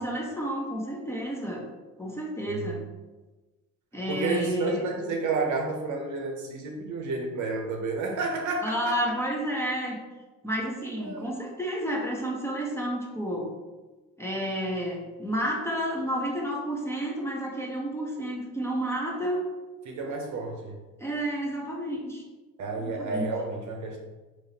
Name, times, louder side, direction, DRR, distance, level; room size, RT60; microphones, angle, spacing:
voice 1, 0.0-1.6 2.0-2.8 3.9-4.8 8.6-10.0 10.4-13.6 14.2-19.5 21.0-22.2 22.8-23.3, equal, 5° left, -3 dB, 0.8 m, -31 dB
voice 2, 4.1-9.1 11.0-11.4 19.8-20.8 22.6-24.0, right 3 dB, 55° right, 1 dB, 0.8 m, -31 dB
3.6 x 3.0 x 2.8 m, 1.2 s
supercardioid pair, 75°, 36 cm